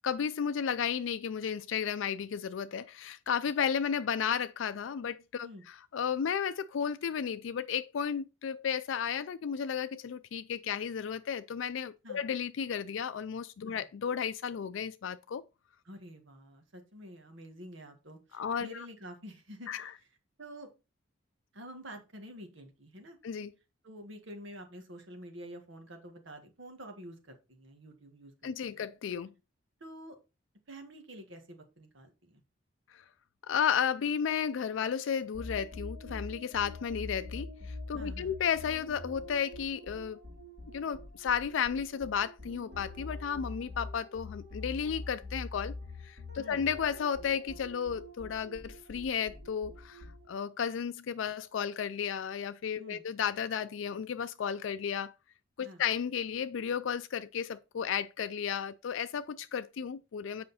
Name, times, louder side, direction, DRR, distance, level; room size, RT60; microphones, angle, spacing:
voice 1, 0.0-5.5 5.9-15.4 18.3-18.9 19.7-19.9 23.2-23.5 28.4-29.3 32.9-33.0 33.5-40.2 40.7-45.7 46.0-55.1 55.6-60.4, left 7 dB, 80° left, 0.4 m, -33 dB
voice 2, 15.8-19.9 20.4-20.7 21.5-23.2 23.8-28.8 29.8-30.2 30.7-32.4 38.0-38.3 46.4-46.6 52.8-53.0 55.6-55.8, equal, 75° right, 1.6 m, -48 dB
sound 1, 35.3-50.5, left 2 dB, 55° right, 2.3 m, -44 dB
7.7 x 5.1 x 4.1 m
head